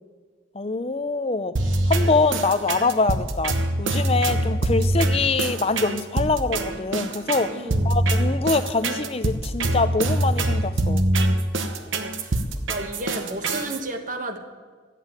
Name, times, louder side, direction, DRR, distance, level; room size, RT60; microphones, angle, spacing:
voice 1, 0.5-11.0, left 3 dB, 30° left, 11 dB, 0.6 m, -24 dB
sound 1, 1.6-13.8, right 1 dB, 70° right, 1.0 m, -24 dB
voice 2, 4.7-5.1 7.5-7.9 11.9-14.4, right 1 dB, 40° right, 5 dB, 1.3 m, -34 dB
13.0 x 8.4 x 8.8 m, 1.5 s
head